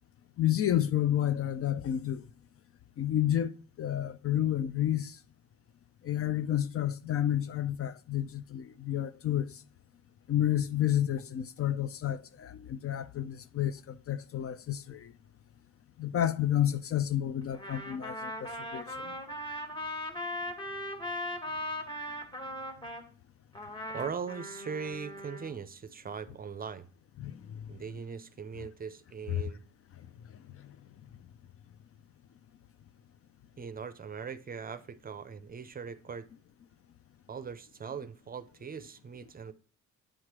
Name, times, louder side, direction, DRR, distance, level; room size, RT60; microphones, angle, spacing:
voice 1, 0.4-2.2 3.0-3.5 3.8-5.2 6.0-9.6 10.3-15.1 16.0-19.1 27.2-27.7 28.6-28.7 29.3-29.4 30.6-30.7, left 11 dB, 50° left, 0.5 m, -30 dB
Trumpet, 17.5-23.0 23.5-25.5, left 1 dB, 15° left, 1.3 m, -39 dB
voice 2, 23.9-26.9 27.7-29.6 33.6-36.3 37.3-39.5, right 6 dB, 30° right, 0.6 m, -40 dB
8.8 x 3.2 x 6.0 m
cardioid pair, 90°, 30 cm